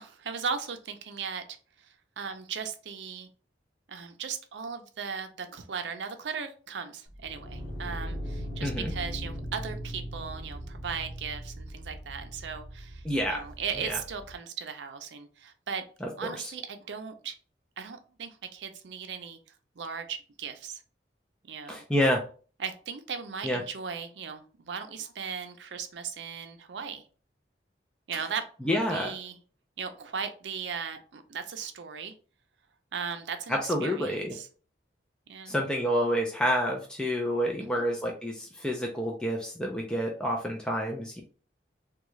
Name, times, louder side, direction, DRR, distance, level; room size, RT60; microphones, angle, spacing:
voice 1, 0.0-1.4 1.8-3.3 3.9-15.8 16.2-17.4 17.8-19.4 19.8-20.8 21.4-21.9 22.6-27.0 28.1-29.4 29.8-32.1 32.9-34.5 35.3-35.6 37.8-37.9, right 6 dB, 85° right, 8 dB, 0.5 m, -37 dB
sound 1, 7.1-14.3, equal, 85° left, 1.2 m, -39 dB
voice 2, 8.6-8.9 13.0-13.4 13.8-14.0 16.0-16.5 21.7-22.2 23.4-23.6 28.7-29.1 33.5-34.3 35.5-41.2, equal, 5° left, 0 dB, 0.4 m, -28 dB
3.6 x 2.3 x 3.1 m, 0.39 s
head